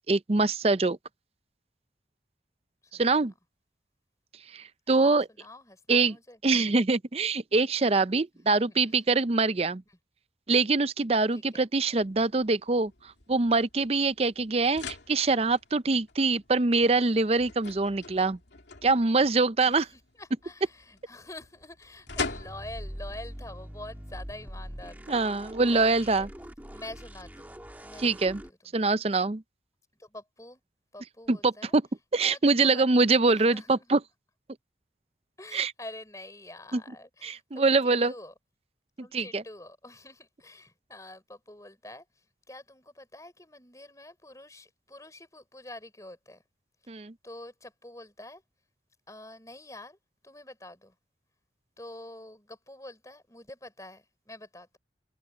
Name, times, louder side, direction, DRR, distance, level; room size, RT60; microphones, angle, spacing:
voice 1, 0.1-1.0 2.9-3.3 4.5-5.3 5.9-6.2 6.4-9.8 10.5-12.9 13.3-18.4 18.8-19.9 25.1-26.3 28.0-28.4 28.7-29.4 31.3-31.8 32.1-34.0 35.5-35.7 36.7-36.8 37.2-38.1 39.0-39.4 46.9-47.1, right 3 dB, 35° right, 0.5 m, -24 dB
voice 2, 2.8-3.3 4.9-6.4 8.3-9.1 9.9-10.0 11.3-11.7 19.7-26.3 26.7-27.6 27.8-28.9 30.0-30.6 30.9-31.7 32.2-33.1 33.3-34.0 35.4-38.3 39.0-42.0 42.5-46.4 46.8-48.4 49.1-50.0 50.2-50.9 51.8-54.8, left 1 dB, 20° left, 5.1 m, -47 dB
sound 1, 12.0-24.9, left 4 dB, 80° left, 2.6 m, -44 dB
sound 2, 22.1-28.5, equal, 10° right, 1.6 m, -43 dB
head